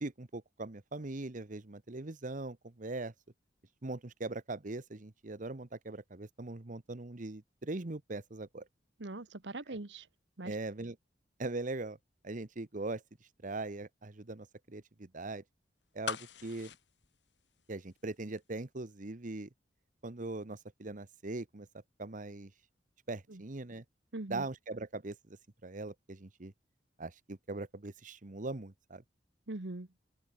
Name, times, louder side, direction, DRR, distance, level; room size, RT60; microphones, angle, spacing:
voice 1, 0.0-3.1 3.8-8.7 9.7-9.8 10.4-11.0 11.4-12.0 12.2-13.0 13.4-15.4 15.9-16.7 17.7-19.5 20.0-21.7 22.0-22.5 23.1-23.8 24.3-25.2 25.6-26.5 27.0-29.0, right 2 dB, 45° right, 1.1 m, -41 dB
voice 2, 9.0-10.1 10.4-10.5 23.3-23.4 24.1-24.5 29.5-29.9, right 2 dB, 80° right, 1.4 m, -41 dB
sound 1, 16.0-18.1 18.4-18.5, left 6 dB, 90° left, 1.8 m, -41 dB
head